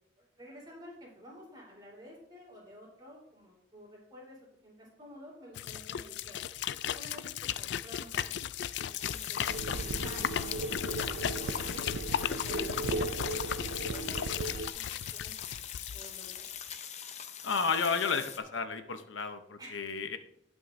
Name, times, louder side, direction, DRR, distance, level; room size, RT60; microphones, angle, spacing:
voice 1, 0.2-6.4 6.9-8.3 8.7-9.5 10.0-13.2 13.9-14.3 14.7-15.4 15.9-16.5 19.6-19.8, equal, 20° right, -3 dB, 3.9 m, -51 dB
sound 1, 5.6-16.5, left 9 dB, 65° left, 0.3 m, -36 dB
sound 2, 9.0-18.4, left 8 dB, 35° left, 0.7 m, -44 dB
sound 3, 9.5-14.7, right 2 dB, 80° right, 0.5 m, -36 dB
voice 2, 17.4-20.2, left 5 dB, 85° left, 9 dB, 0.8 m, -32 dB
18.5 x 6.1 x 2.6 m, 0.73 s
head